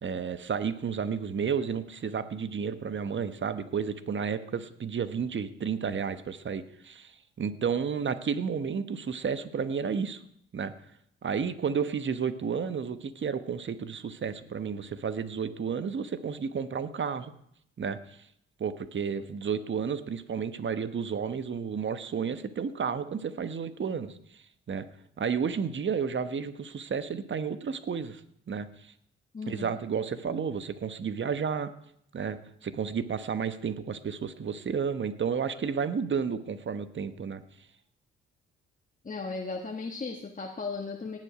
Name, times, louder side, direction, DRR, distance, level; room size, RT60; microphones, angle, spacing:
voice 1, 0.0-10.2 10.5-10.7 11.2-17.3 17.8-18.0 18.6-24.9 25.2-28.2 28.5-28.9 29.5-31.7 32.1-37.4, right 6 dB, 40° right, 12 dB, 1.2 m, -32 dB
voice 2, 29.3-29.8 39.0-41.2, left 4 dB, 25° left, 1 dB, 1.4 m, -36 dB
18.0 x 7.6 x 5.0 m, 0.71 s
hypercardioid pair, 45°, 30 cm